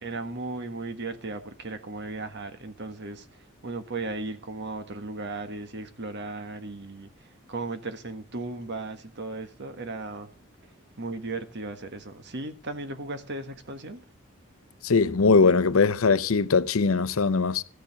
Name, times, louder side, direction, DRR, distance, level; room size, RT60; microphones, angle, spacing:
voice 1, 0.0-3.3 3.6-7.1 7.5-10.3 11.0-14.0, right 2 dB, 55° right, 1.5 m, -36 dB
voice 2, 14.8-17.6, left 4 dB, 85° left, 0.7 m, -21 dB
14.5 x 7.0 x 5.7 m
head